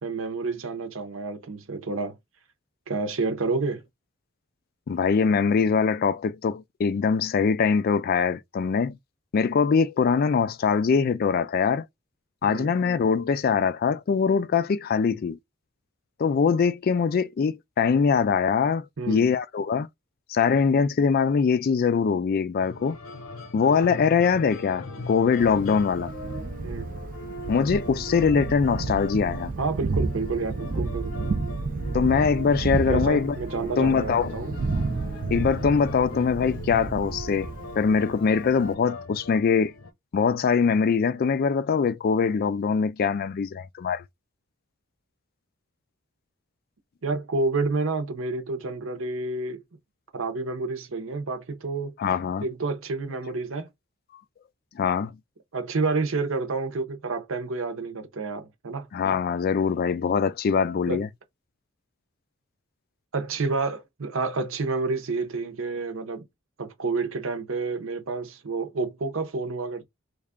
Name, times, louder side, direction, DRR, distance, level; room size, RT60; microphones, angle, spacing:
voice 1, 0.0-2.1 2.9-3.8 12.4-12.7 19.0-19.3 26.6-26.8 29.6-31.1 32.9-34.6 47.0-49.6 50.1-51.9 52.4-53.7 55.5-58.9 60.9-61.0 63.1-66.2 66.6-69.8, right 3 dB, 75° right, 0.8 m, -29 dB
voice 2, 4.9-9.0 9.3-11.8 12.4-15.4 16.2-19.9 20.3-23.0 23.5-26.1 27.5-29.5 31.9-33.4 33.8-34.4 35.3-39.7 40.1-44.0 52.0-52.4 54.8-55.1 58.9-61.1, left 5 dB, 45° left, 0.3 m, -23 dB
sound 1, 22.6-39.9, left 2 dB, 90° left, 0.9 m, -40 dB
Thunder, 25.4-38.7, right 3 dB, 40° right, 0.4 m, -32 dB
3.3 x 2.4 x 3.5 m
head